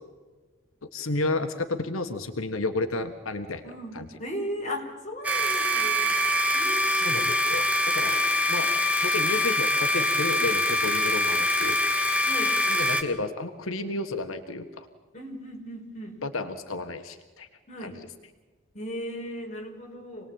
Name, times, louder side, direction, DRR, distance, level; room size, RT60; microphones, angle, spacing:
voice 1, 0.9-3.6 3.9-4.1 6.9-8.2 8.5-8.7 9.0-11.8 12.7-14.9 16.2-17.5 17.8-17.9, left 2 dB, 85° left, 7 dB, 1.6 m, -31 dB
voice 2, 3.6-6.2 6.5-7.3 8.0-8.2 12.2-12.6 15.1-16.2 17.7-18.1 18.7-20.3, equal, 35° left, 1 dB, 5.2 m, -37 dB
sound 1, 5.2-13.0, left 1 dB, 5° right, 2.0 m, -24 dB
27.5 x 20.0 x 8.9 m, 1.3 s
head